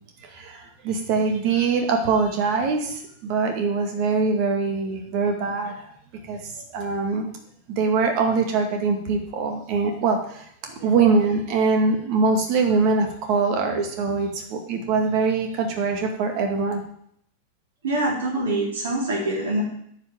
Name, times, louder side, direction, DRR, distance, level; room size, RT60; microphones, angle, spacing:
voice 1, 0.2-5.9 6.3-7.3 7.7-16.8, right 4 dB, 45° right, 4 dB, 2.2 m, -23 dB
voice 2, 17.8-19.6, right 2 dB, 60° right, -1 dB, 3.8 m, -24 dB
9.7 x 5.8 x 7.5 m, 0.69 s
figure-of-eight pair, 90°, 0 cm